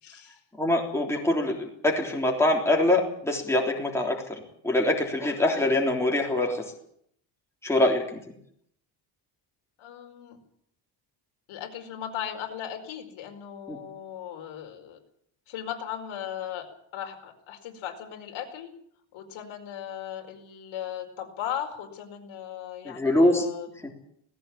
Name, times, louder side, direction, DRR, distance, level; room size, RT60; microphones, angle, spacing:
voice 1, 0.0-0.4 9.8-10.4 11.5-15.0 15.5-16.7 16.9-18.7 19.1-23.9, left 10 dB, 85° left, 3 dB, 4.9 m, -37 dB
voice 2, 0.6-6.7 7.6-8.2 13.7-13.8 22.8-23.5 23.8-23.9, left 1 dB, 5° left, 0 dB, 3.5 m, -24 dB
18.5 x 16.0 x 8.7 m, 0.70 s
cardioid pair, 160°, 47 cm